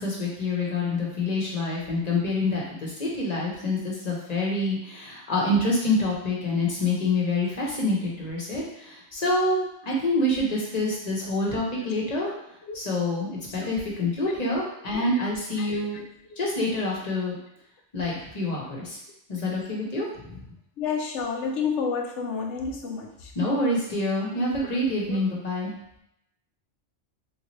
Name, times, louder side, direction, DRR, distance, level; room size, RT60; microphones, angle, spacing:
voice 1, 0.0-12.3 12.7-16.0 16.4-17.4 17.9-19.0 19.3-20.4 23.3-25.7, left 2 dB, 40° left, -3 dB, 0.9 m, -27 dB
voice 2, 20.8-23.1 25.1-25.2, left 5 dB, 85° left, 2 dB, 0.9 m, -29 dB
3.5 x 2.8 x 3.0 m, 0.79 s
omnidirectional pair, 1.2 m